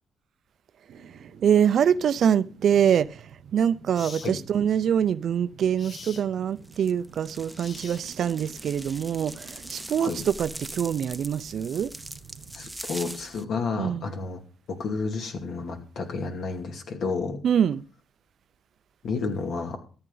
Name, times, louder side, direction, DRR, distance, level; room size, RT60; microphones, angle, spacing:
sound 1, 0.9-13.9 14.3-14.4, right 7 dB, 80° right, 1.0 m, -50 dB
voice 1, 1.4-11.9 13.8-14.0 17.4-17.8, right 8 dB, 60° right, 0.5 m, -24 dB
sound 2, 3.1-3.2 3.9-4.3 5.8-6.3 7.6-8.3, left 5 dB, 40° left, 0.8 m, -43 dB
sound 3, 6.6-13.4, right 1 dB, 5° right, 0.8 m, -42 dB
voice 2, 12.5-14.4 14.7-17.4 19.0-19.8, left 4 dB, 65° left, 2.4 m, -31 dB
14.0 x 8.8 x 3.9 m
cardioid pair, 90°, 0 cm